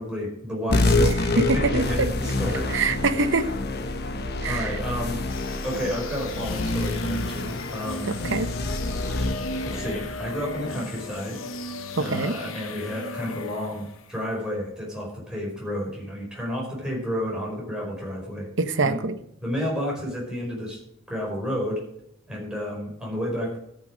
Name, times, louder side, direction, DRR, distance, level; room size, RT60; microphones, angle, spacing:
voice 1, 0.0-2.7 4.5-5.2 5.6-8.1 9.6-11.4 12.0-18.5 18.8-19.0 19.4-20.8 21.1-21.8 22.3-23.6, equal, 5° right, -3 dB, 5.1 m, -31 dB
sound 1, 0.7-11.6, left 2 dB, 55° left, 1.2 m, -27 dB
voice 2, 1.5-2.1 2.5-3.5 4.4-4.8 8.1-8.5 12.0-12.3 18.6-19.2, right 3 dB, 65° right, 10 dB, 1.0 m, -25 dB
sound 2, 5.3-14.2, left 3 dB, 85° left, 1.1 m, -37 dB
13.5 x 7.3 x 5.1 m, 0.73 s
head